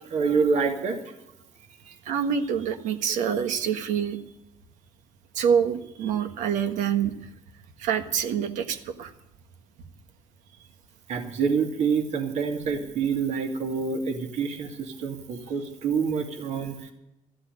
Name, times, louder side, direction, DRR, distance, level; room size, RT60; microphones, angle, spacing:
voice 1, 0.1-1.0 1.9-2.0 11.1-16.9, right 5 dB, 60° right, 4 dB, 2.5 m, -27 dB
voice 2, 2.0-4.2 5.3-7.1 7.8-9.1, right 7 dB, 85° right, 8 dB, 1.5 m, -26 dB
14.0 x 7.8 x 9.9 m, 0.88 s
cardioid pair, 95°, 13 cm